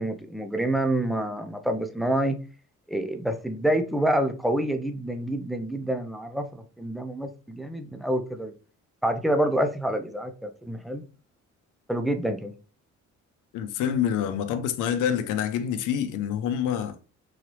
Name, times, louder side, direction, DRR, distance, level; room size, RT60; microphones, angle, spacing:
voice 1, 0.0-2.4 2.9-8.5 9.0-11.0 11.9-12.5, right 1 dB, ahead, 0.5 m, -27 dB
voice 2, 13.5-16.9, left 9 dB, 85° left, 0.6 m, -27 dB
3.8 x 3.2 x 3.0 m
cardioid pair, 90°, 30 cm